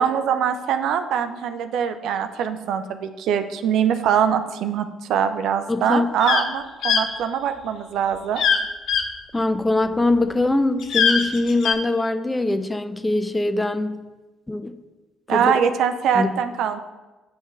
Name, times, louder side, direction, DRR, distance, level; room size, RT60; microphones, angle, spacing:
voice 1, 0.0-8.4 15.3-16.8, right 8 dB, 65° right, 9 dB, 0.4 m, -23 dB
voice 2, 5.7-6.1 9.3-14.0 14.5-14.8 15.3-15.5 16.1-16.4, left 2 dB, 15° left, 10 dB, 0.5 m, -22 dB
sound 1, 6.2-6.4 6.8-7.0 8.4-8.6 8.9-9.0 10.8-11.7, left 6 dB, 60° left, 0.6 m, -20 dB
8.7 x 5.4 x 2.3 m, 1.1 s
hypercardioid pair, 50°, 0 cm